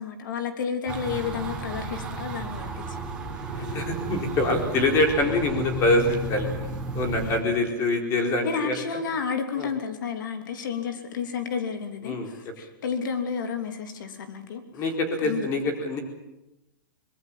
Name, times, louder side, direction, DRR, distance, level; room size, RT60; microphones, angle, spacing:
voice 1, 0.0-3.0 3.4-3.8 7.2-7.4 8.4-14.8 15.2-15.5, left 6 dB, 65° left, 7 dB, 3.1 m, -31 dB
sound 1, 0.9-7.4, right 2 dB, 10° right, 4.2 m, -33 dB
voice 2, 3.6-6.5 6.9-8.7 9.6-9.7 12.0-12.3 14.7-16.0, left 2 dB, 25° left, 4 dB, 4.4 m, -25 dB
25.0 x 21.0 x 7.4 m, 0.93 s
supercardioid pair, 170°, 11 cm